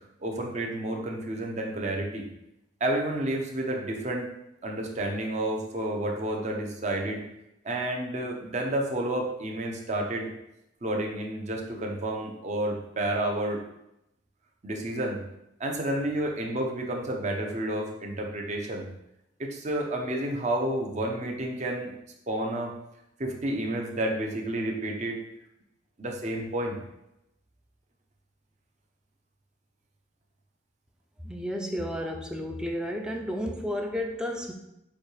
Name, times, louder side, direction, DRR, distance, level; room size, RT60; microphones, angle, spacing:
voice 1, 0.2-2.2 2.8-4.3 4.6-7.2 7.6-10.3 10.8-13.6 14.6-15.2 15.6-18.9 19.4-21.9 22.3-22.7 23.2-25.2 26.0-26.8, right 1 dB, 40° right, 0 dB, 0.7 m, -30 dB
voice 2, 31.2-34.5, equal, 5° right, 3 dB, 0.4 m, -32 dB
6.9 x 2.3 x 3.2 m, 0.85 s
head